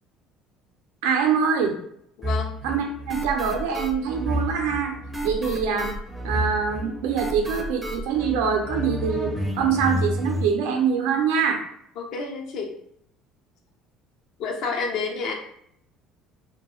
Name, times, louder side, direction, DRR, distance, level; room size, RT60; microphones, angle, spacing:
voice 1, 1.0-1.8 2.6-5.0 5.2-5.9 6.2-11.6, right 6 dB, 85° right, 3 dB, 0.5 m, -24 dB
voice 2, 2.2-2.6 12.0-12.7 14.4-15.3, left 4 dB, 65° left, 2 dB, 0.5 m, -29 dB
sound 1, 2.2-10.5, equal, 10° right, 0.4 m, -30 dB
2.3 x 2.1 x 3.0 m, 0.71 s
supercardioid pair, 90°, 0 cm